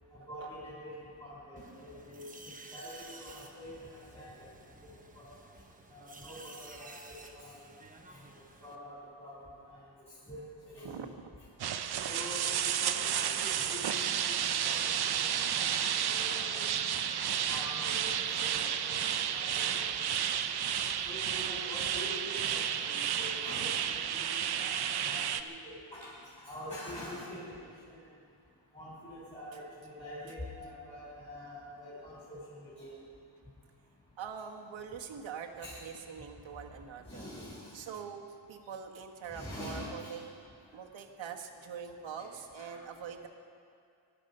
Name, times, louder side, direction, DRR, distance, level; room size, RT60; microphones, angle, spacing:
voice 1, 0.1-4.5 4.8-5.3 5.9-7.7 8.1-9.8 10.3-10.9 12.0-16.6 17.5-18.1 18.4-19.0 19.3-19.9 21.1-27.9 28.7-32.9 35.6-35.8 37.1-37.8 39.3-40.1 42.2-42.3 42.6-42.8, left 1 dB, 15° left, -9 dB, 4.0 m, -46 dB
sound 1, 1.6-8.8, right 3 dB, 15° right, 0.9 m, -53 dB
sound 2, 11.6-25.4, right 9 dB, 50° right, 0.7 m, -32 dB
voice 2, 34.2-37.3 37.7-40.2 40.7-43.3, right 7 dB, 65° right, 3 dB, 1.6 m, -43 dB
20.5 x 12.5 x 5.5 m, 2.4 s
wide cardioid pair, 165°, 49 cm